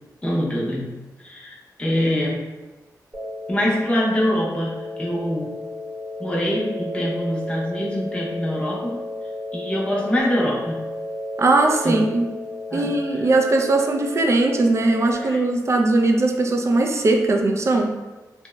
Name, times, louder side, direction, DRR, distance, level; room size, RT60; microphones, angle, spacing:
voice 1, 0.2-0.9 1.2-2.4 3.5-5.5 6.2-9.0 9.5-10.8 11.8-12.1 12.7-13.0 15.2-15.4, equal, 15° left, -4 dB, 0.6 m, -24 dB
sound 1, 3.1-15.1, left 1 dB, 20° right, 1.0 m, -33 dB
voice 2, 11.4-12.3 12.7-17.9, right 2 dB, 40° right, 2 dB, 0.3 m, -19 dB
2.7 x 2.0 x 2.2 m, 1.2 s
cardioid pair, 65°, 7 cm